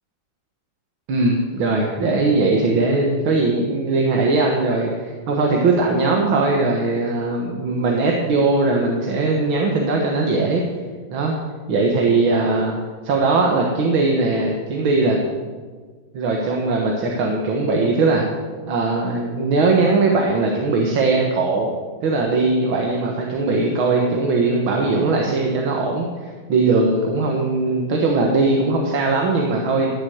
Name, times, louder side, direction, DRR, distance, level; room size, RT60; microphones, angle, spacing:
voice 1, 1.1-10.6 11.1-11.4 11.7-12.8 13.0-15.3 16.1-18.2 18.7-21.7 22.0-29.9, right 3 dB, 85° right, 0 dB, 2.3 m, -20 dB
15.0 x 7.1 x 7.9 m, 1.5 s
omnidirectional pair, 2.1 m